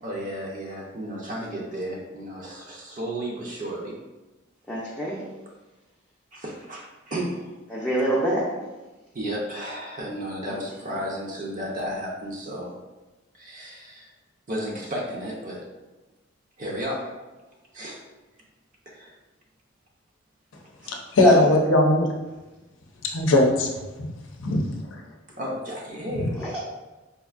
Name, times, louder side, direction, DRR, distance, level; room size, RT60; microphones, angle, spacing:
voice 1, 0.0-4.0 4.8-4.9 6.3-7.6 9.1-12.7 13.3-14.1 14.5-15.6 16.6-17.1 17.7-18.0 18.9-19.2 25.4-26.4, equal, 40° right, -3 dB, 0.5 m, -33 dB
voice 2, 4.7-5.2 7.7-8.4 21.2-21.3 26.4-26.6, left 1 dB, 10° left, -7 dB, 0.5 m, -23 dB
voice 3, 20.9-22.1 23.1-23.7 24.4-24.7, left 1 dB, 75° left, 1 dB, 0.6 m, -20 dB
4.3 x 2.6 x 2.4 m, 1.1 s
head